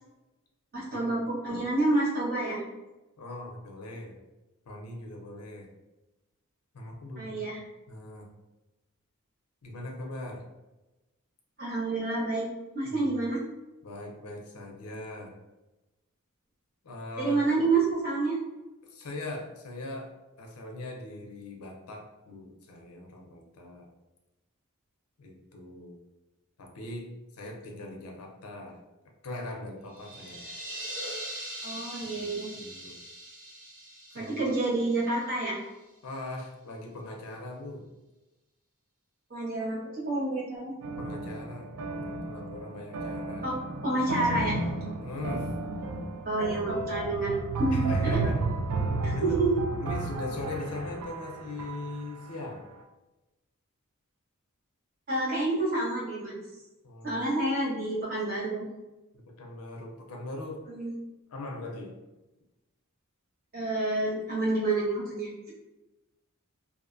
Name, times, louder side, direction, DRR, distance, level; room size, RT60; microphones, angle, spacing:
voice 1, 0.7-2.6 7.2-7.6 11.6-12.5 12.7-13.4 17.2-18.4 31.6-32.5 34.1-35.6 39.3-40.7 43.4-43.6 43.8-44.6 46.2-48.2 49.0-49.5 55.1-56.4 57.0-58.6 60.7-60.9 63.5-65.5, right 2 dB, 45° right, -8 dB, 1.0 m, -28 dB
voice 2, 3.2-4.1 4.7-5.7 6.7-7.4 7.9-8.3 9.6-10.4 12.8-13.1 13.8-15.3 16.8-17.4 18.9-20.1 20.4-23.9 25.2-26.0 26.6-27.1 27.3-28.8 29.2-30.5 32.1-33.0 34.1-34.5 36.0-37.9 41.0-43.5 44.8-45.5 47.7-48.4 49.1-49.4 49.8-52.6 56.8-57.2 59.1-60.6 61.3-61.9, left 2 dB, 75° left, 1 dB, 0.5 m, -40 dB
sound 1, 29.9-35.5, right 1 dB, 65° right, 1.2 m, -41 dB
sound 2, 40.8-52.3, right 3 dB, 90° right, 0.4 m, -33 dB
2.5 x 2.1 x 2.5 m, 1.0 s
head